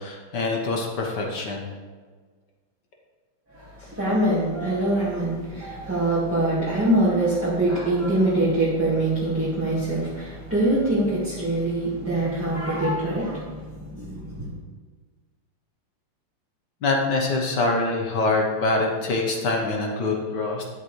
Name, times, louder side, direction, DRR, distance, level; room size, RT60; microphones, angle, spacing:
voice 1, 0.0-1.7 16.8-20.6, left 2 dB, 55° left, 1 dB, 1.7 m, -24 dB
voice 2, 3.5-14.6, right 1 dB, 5° right, -9 dB, 1.5 m, -24 dB
10.5 x 8.1 x 3.3 m, 1.5 s
omnidirectional pair, 2.4 m